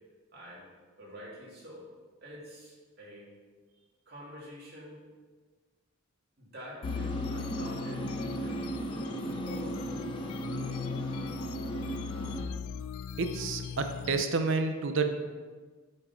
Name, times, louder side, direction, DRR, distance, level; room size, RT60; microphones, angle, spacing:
voice 1, 0.3-0.7 1.0-1.9 2.2-3.3 3.8-5.0 6.4-10.2, equal, 45° right, -6 dB, 2.8 m, -48 dB
sound 1, 6.8-14.2, left 7 dB, 85° left, 0.3 m, -39 dB
sound 2, 6.8-12.5, right 1 dB, 25° left, 0.8 m, -36 dB
voice 2, 13.2-15.1, right 4 dB, 60° right, 7 dB, 0.6 m, -29 dB
8.5 x 6.6 x 4.3 m, 1.4 s
head